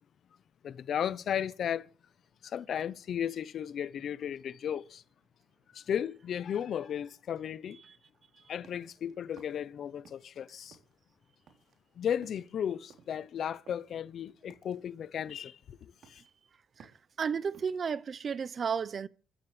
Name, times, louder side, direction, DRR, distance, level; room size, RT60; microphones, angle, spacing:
voice 1, 0.6-1.9 2.4-5.0 5.7-7.8 8.5-10.8 12.0-16.2, left 9 dB, 60° left, 0.8 m, -35 dB
sound 1, 8.4-10.4 10.7-17.9, right 7 dB, 70° right, 3.5 m, -60 dB
voice 2, 17.2-19.1, right 6 dB, 45° right, 0.8 m, -33 dB
28.0 x 14.0 x 3.3 m
cardioid pair, 90°, 0 cm